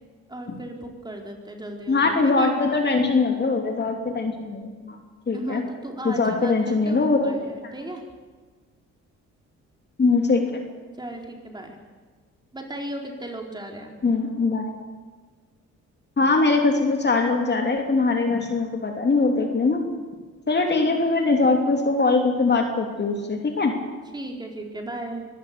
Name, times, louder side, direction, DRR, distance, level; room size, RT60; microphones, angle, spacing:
voice 1, 0.3-2.5 5.3-8.0 11.0-11.8 12.5-13.9 20.8-20.9 24.1-25.3, right 1 dB, 15° right, 1 dB, 4.3 m, -35 dB
voice 2, 1.9-5.0 5.3-5.6 6.0-7.3 10.0-10.6 14.0-14.7 16.2-19.8 20.5-23.7, left 3 dB, 35° left, 3 dB, 3.0 m, -22 dB
24.0 x 17.0 x 6.9 m, 1.4 s
cardioid pair, 90°, 30 cm